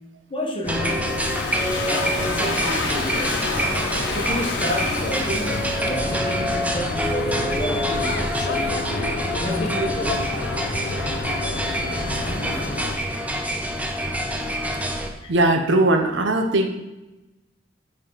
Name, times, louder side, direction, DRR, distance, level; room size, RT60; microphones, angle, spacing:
voice 1, 0.3-1.1 1.8-3.4 3.9-8.6 9.4-10.4 11.9-12.3 15.2-15.3, left 1 dB, 30° left, -1 dB, 1.1 m, -30 dB
sound 1, 0.6-15.1, equal, 10° right, 0.6 m, -26 dB
sound 2, 0.7-13.0, left 3 dB, 60° left, 0.5 m, -30 dB
Domestic sounds home sounds, 0.8-6.5, left 3 dB, 80° left, 1.0 m, -30 dB
voice 2, 15.3-16.7, right 2 dB, 75° right, 5 dB, 0.8 m, -19 dB
7.4 x 3.5 x 4.9 m, 1.0 s
head